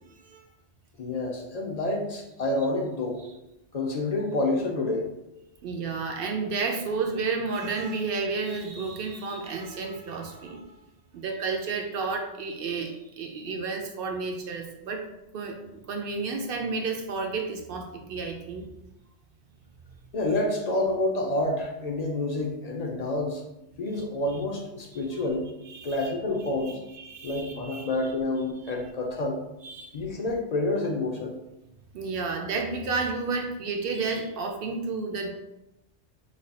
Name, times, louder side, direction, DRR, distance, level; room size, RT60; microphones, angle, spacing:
voice 1, 1.0-3.2 3.7-5.1 20.1-23.4 23.8-25.5 25.8-26.8 27.2-29.4 29.9-31.4, left 2 dB, 55° left, 0 dB, 0.4 m, -28 dB
voice 2, 5.6-10.8 11.1-15.0 15.3-15.6 15.9-18.7 25.7-26.1 26.6-27.9 28.6-28.7 29.6-29.9 31.9-35.3, right 4 dB, 65° right, 3 dB, 0.7 m, -31 dB
3.2 x 2.3 x 4.0 m, 0.91 s
omnidirectional pair, 1.2 m